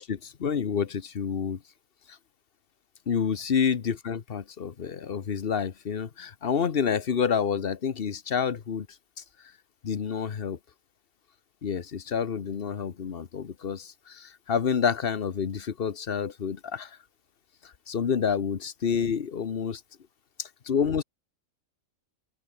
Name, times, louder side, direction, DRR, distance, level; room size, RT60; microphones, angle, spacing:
voice 1, 0.0-1.6 3.1-8.9 9.8-10.6 11.6-16.9 17.9-19.8 20.4-21.0, left 7 dB, 50° left, 1.2 m, -28 dB
open air
omnidirectional pair, 1.3 m